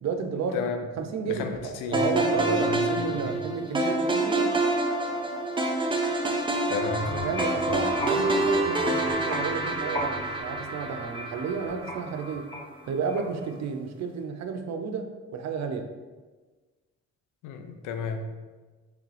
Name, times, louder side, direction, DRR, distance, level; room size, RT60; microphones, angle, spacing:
voice 1, 0.0-0.6 1.0-4.6 7.2-12.5 12.9-15.9, right 5 dB, 60° right, 6 dB, 0.5 m, -32 dB
voice 2, 0.5-0.8 1.3-1.5 1.8-2.0 2.4-2.8 6.7-7.3 17.4-18.4, left 5 dB, 80° left, 6 dB, 0.5 m, -32 dB
sound 1, 1.9-12.2, right 2 dB, 15° right, 0.6 m, -27 dB
sound 2, 6.8-13.5, left 1 dB, 15° left, 1.2 m, -36 dB
3.6 x 3.3 x 3.2 m, 1.3 s
supercardioid pair, 60°, 31 cm